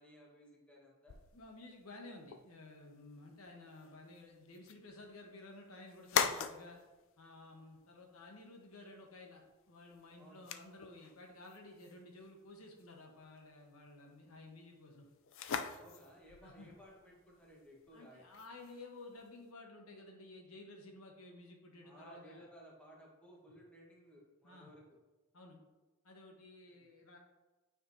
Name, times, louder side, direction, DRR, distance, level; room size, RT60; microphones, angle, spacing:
voice 1, 0.0-1.2 10.2-10.4 15.7-18.4 21.8-25.0 26.6-26.8, equal, 5° left, -4 dB, 1.4 m, -58 dB
sound 1, 1.1-19.5, left 7 dB, 65° left, 0.4 m, -44 dB
voice 2, 1.3-6.8 7.2-15.1 15.4-15.8 16.4-16.7 17.9-22.5 24.4-24.7 25.3-25.6 26.0-27.2, left 2 dB, 80° left, 1 dB, 1.1 m, -54 dB
8.8 x 5.0 x 2.8 m, 1.2 s
head